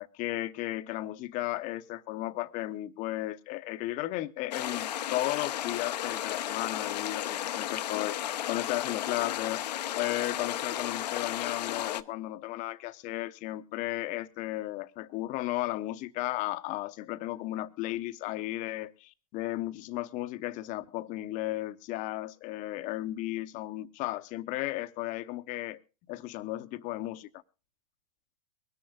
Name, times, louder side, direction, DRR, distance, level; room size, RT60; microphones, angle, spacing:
voice 1, 0.0-9.6 9.9-25.8 26.1-27.3, left 16 dB, 35° left, 0.8 m, -34 dB
sound 1, 4.5-12.0, left 12 dB, 75° left, 0.7 m, -34 dB
23.5 x 10.5 x 2.3 m
hypercardioid pair, 120°, 21 cm